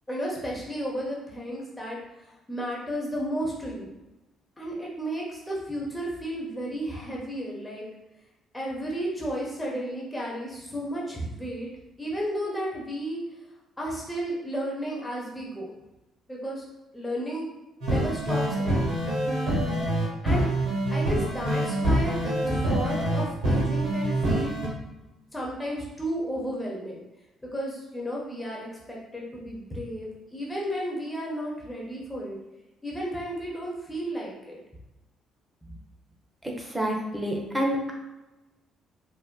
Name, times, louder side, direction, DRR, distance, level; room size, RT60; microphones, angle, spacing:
voice 1, 0.1-2.0 2.5-3.9 4.6-7.9 8.5-11.7 12.0-13.2 13.8-15.7 16.3-16.6 16.9-17.5 17.9-18.9 20.2-20.5 20.9-24.6 25.3-27.0 27.5-32.4 32.8-34.6, equal, 10° left, -4 dB, 1.0 m, -33 dB
sound 1, 17.8-24.7, right 1 dB, 55° right, 1.0 m, -25 dB
voice 2, 36.7-37.9, equal, 15° right, 0 dB, 0.8 m, -27 dB
4.4 x 2.5 x 2.3 m, 1.0 s
figure-of-eight pair, 45°, 0 cm